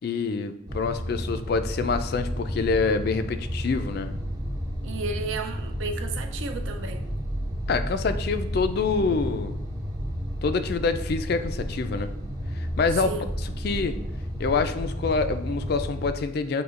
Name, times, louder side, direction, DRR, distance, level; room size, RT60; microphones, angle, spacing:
voice 1, 0.0-4.1 7.7-9.6 10.4-12.1 12.5-13.1 13.4-14.0 14.4-16.6, left 4 dB, 50° left, 9 dB, 0.3 m, -26 dB
sound 1, 0.7-16.1, equal, 15° right, 0.5 m, -32 dB
voice 2, 4.8-7.0 12.9-13.3, right 4 dB, 65° right, 6 dB, 0.5 m, -33 dB
7.7 x 2.8 x 2.4 m, 0.92 s
head